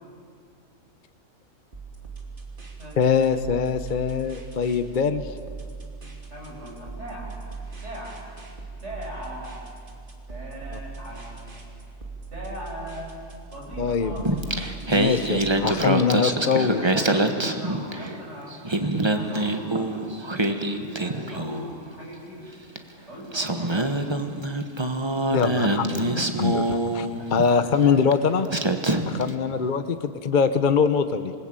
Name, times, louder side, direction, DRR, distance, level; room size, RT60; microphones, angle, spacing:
sound 1, 1.7-15.4, right 4 dB, 40° right, 3.0 m, -40 dB
voice 1, 3.0-5.3 13.8-14.1 14.9-17.0 25.3-28.5 29.1-31.3, left 6 dB, 40° left, 10 dB, 0.9 m, -23 dB
voice 2, 6.3-7.4 7.8-8.2 8.8-9.7 10.3-11.6 12.3-13.2 13.5-14.3 16.5-22.5 23.1-24.1 27.1-28.0, equal, 55° right, -3 dB, 7.3 m, -39 dB
Singing, 14.2-18.2 18.5-21.7 22.8-22.9 23.3-27.5 28.1-28.2 28.5-29.3, right 2 dB, 20° right, 1.3 m, -25 dB
27.0 x 20.0 x 8.9 m, 2.3 s
omnidirectional pair, 1.4 m